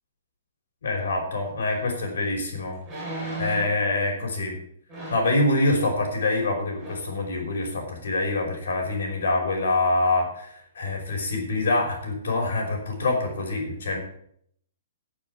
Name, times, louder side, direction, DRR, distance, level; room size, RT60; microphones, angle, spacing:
voice 1, 0.8-2.8 3.4-4.6 5.1-14.0, left 2 dB, 65° left, 2 dB, 5.3 m, -25 dB
sound 1, 1.8-1.9 2.8-3.8 4.9-5.4 6.3-6.5 6.8-7.1 7.6-7.7, right 2 dB, 10° right, 5.4 m, -36 dB
12.5 x 7.2 x 8.2 m, 0.68 s
hypercardioid pair, 180°, 0 cm